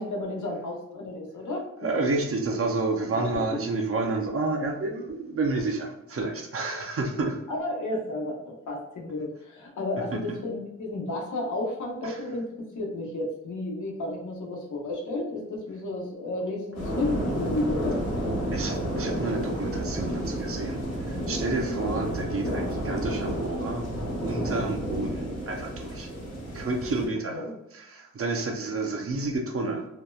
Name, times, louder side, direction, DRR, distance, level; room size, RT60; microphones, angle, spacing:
voice 1, 0.0-1.7 3.1-3.6 7.5-18.0 21.1-21.4 27.3-27.5, left 2 dB, 90° left, -2 dB, 0.8 m, -32 dB
voice 2, 1.8-7.4 10.1-10.4 12.0-12.2 18.5-23.9 24.2-26.1 26.5-27.4 27.7-29.9, right 3 dB, 50° right, 2 dB, 0.5 m, -30 dB
sound 1, 16.7-27.1, equal, 60° left, 0.9 m, -31 dB
2.8 x 2.1 x 2.3 m, 0.89 s
wide cardioid pair, 165°, 29 cm